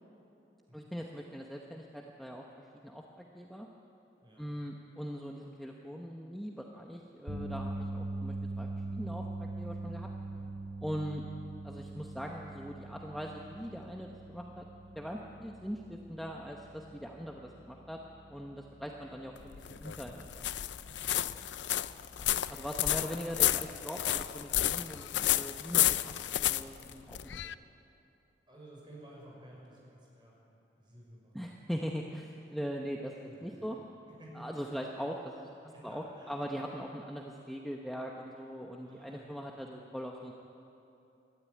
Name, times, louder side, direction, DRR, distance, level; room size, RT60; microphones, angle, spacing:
voice 1, 0.7-3.7 4.4-10.1 10.8-11.2 11.6-14.6 14.9-18.0 18.3-20.5 22.2-27.5 31.3-33.1 33.4-33.8 34.3-35.3 35.8-40.3, equal, ahead, 0 dB, 0.9 m, -41 dB
voice 2, 4.2-4.6 10.3-10.5 20.8-21.5 23.0-23.2 28.5-30.4 30.8-31.6 33.2-33.7 34.1-34.4 35.6-36.9 38.8-39.7, right 1 dB, 25° right, -4 dB, 6.1 m, -54 dB
sound 1, 7.3-19.5 19.9-20.1 22.3-22.4, right 2 dB, 60° right, 3.3 m, -42 dB
sound 2, 19.4-27.5, left 13 dB, 80° left, 0.5 m, -31 dB
21.0 x 13.5 x 9.5 m, 2.9 s
head